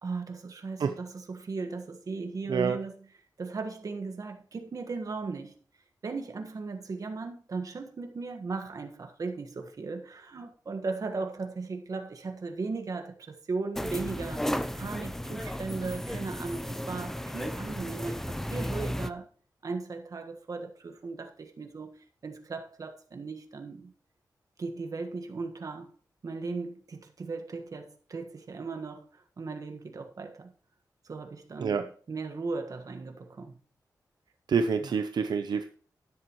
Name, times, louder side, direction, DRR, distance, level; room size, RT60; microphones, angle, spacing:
voice 1, 0.0-3.1 3.4-5.6 6.0-19.3 19.6-23.9 24.6-25.9 26.2-30.5 31.0-33.6 34.8-35.0, right 4 dB, 55° right, 1.5 m, -37 dB
sound 1, 13.8-19.1, equal, 5° left, 0.6 m, -34 dB
voice 2, 34.5-35.7, right 6 dB, 80° right, 0.7 m, -27 dB
12.5 x 10.5 x 3.1 m
wide cardioid pair, 110°, 7 cm